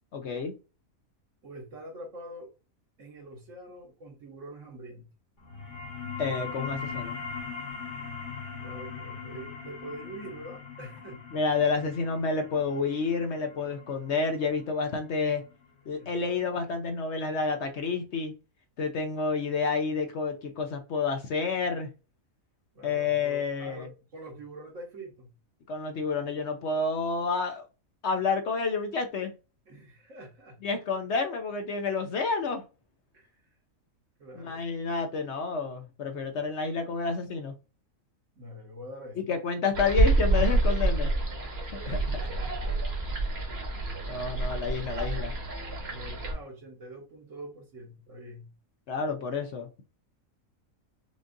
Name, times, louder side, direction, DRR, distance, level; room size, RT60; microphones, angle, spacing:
voice 1, 0.1-0.5 6.2-7.2 11.3-15.4 15.9-18.3 18.8-21.9 22.8-23.9 25.7-27.7 28.0-29.3 30.6-32.6 34.4-37.5 39.3-41.1 41.6-42.0 44.1-45.3 48.9-49.8, left 4 dB, 60° left, 0.9 m, -29 dB
voice 2, 1.4-2.5 3.0-5.0 8.6-11.2 15.8-16.2 22.7-25.3 29.7-30.6 33.1-33.3 34.2-34.6 38.4-39.2 41.8-42.8 45.9-48.5, right 1 dB, 65° right, 1.6 m, -44 dB
sound 1, 5.4-16.5, left 5 dB, 35° left, 1.2 m, -41 dB
sound 2, 39.7-46.3, right 2 dB, 50° right, 1.4 m, -28 dB
5.2 x 2.4 x 2.5 m
omnidirectional pair, 1.5 m